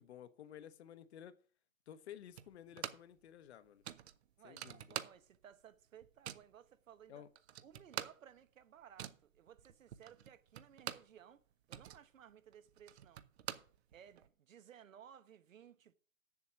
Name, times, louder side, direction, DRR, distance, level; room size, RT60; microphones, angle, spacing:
voice 1, 0.0-1.4 1.9-3.8 4.4-5.0 7.1-7.3, left 10 dB, 55° left, 1.0 m, -54 dB
sound 1, 2.4-3.2 3.5-3.6 3.8-5.5 5.8-6.5 7.1-7.2 7.4-11.2 11.5-14.3, right 11 dB, 50° right, 0.9 m, -47 dB
voice 2, 4.4-7.2 7.6-11.4 11.7-13.2 13.9-15.9, right 9 dB, 75° right, 1.2 m, -59 dB
7.9 x 7.2 x 7.2 m
hypercardioid pair, 145°, 40 cm